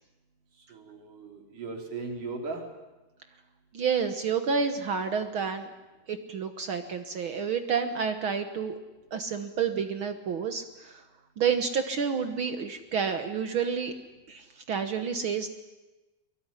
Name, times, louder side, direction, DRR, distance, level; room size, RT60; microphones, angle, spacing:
voice 1, 0.7-2.6, right 3 dB, 60° right, 2 dB, 5.4 m, -37 dB
voice 2, 3.7-5.7 6.1-8.8 9.1-11.0 11.4-13.9 14.3-15.5, right 6 dB, 85° right, 7 dB, 1.1 m, -29 dB
24.0 x 22.5 x 9.9 m, 1.1 s
omnidirectional pair, 4.2 m